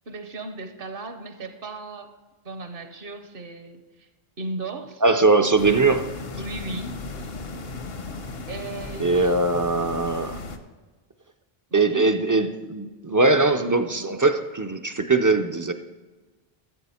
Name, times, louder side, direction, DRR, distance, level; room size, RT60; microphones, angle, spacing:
voice 1, 0.1-2.1 2.4-4.1 4.4-5.0 5.8-6.1 6.3-7.4 8.5-9.3 11.7-12.1, right 2 dB, 60° right, 8 dB, 1.1 m, -36 dB
voice 2, 5.0-6.1 9.0-10.4 11.7-15.7, right 3 dB, 30° right, 8 dB, 0.3 m, -21 dB
sound 1, 5.6-10.6, left 3 dB, 70° left, 1.1 m, -36 dB
14.0 x 7.6 x 4.3 m, 1.2 s
omnidirectional pair, 1.0 m